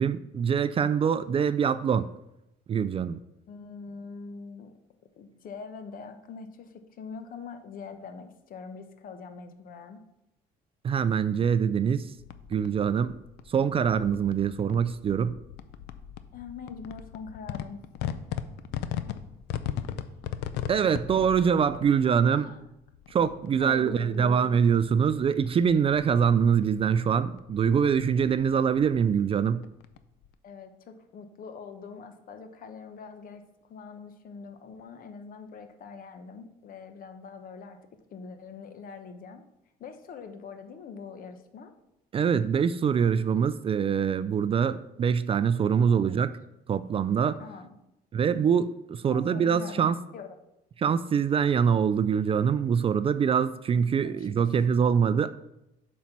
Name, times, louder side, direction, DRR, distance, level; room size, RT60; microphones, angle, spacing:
voice 1, 0.0-2.1 2.7-3.2 10.8-12.1 12.5-13.1 13.5-15.3 20.7-22.5 23.1-29.6 42.1-46.3 46.7-47.4 48.1-50.0 50.8-55.3, right 7 dB, 35° right, 14 dB, 0.3 m, -24 dB
voice 2, 3.5-4.7 5.2-10.0 16.3-17.8 22.3-22.7 23.6-24.3 30.4-33.4 33.7-37.8 38.1-39.4 39.8-41.7 45.9-46.2 47.4-47.8 49.1-49.9 50.1-50.3 54.2-54.5, left 5 dB, 55° left, 7 dB, 1.0 m, -43 dB
sound 1, 12.2-30.3, left 10 dB, 85° left, 0.5 m, -40 dB
7.4 x 4.2 x 5.9 m, 0.86 s
cardioid pair, 110°, 17 cm